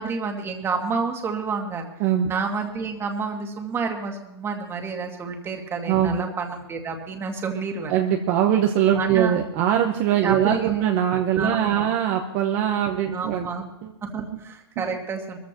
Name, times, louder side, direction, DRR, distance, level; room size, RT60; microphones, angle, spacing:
voice 1, 0.0-1.9 2.3-7.9 8.9-9.4 10.2-10.8 11.4-11.9 12.9-13.7 14.0-15.4, right 5 dB, 20° right, 3 dB, 2.0 m, -29 dB
voice 2, 2.0-2.3 5.9-6.3 7.9-13.5 13.8-13.9 14.2-14.3 14.8-14.9, right 10 dB, 40° right, 3 dB, 1.0 m, -22 dB
22.0 x 14.5 x 3.0 m, 0.89 s
hypercardioid pair, 145°, 14 cm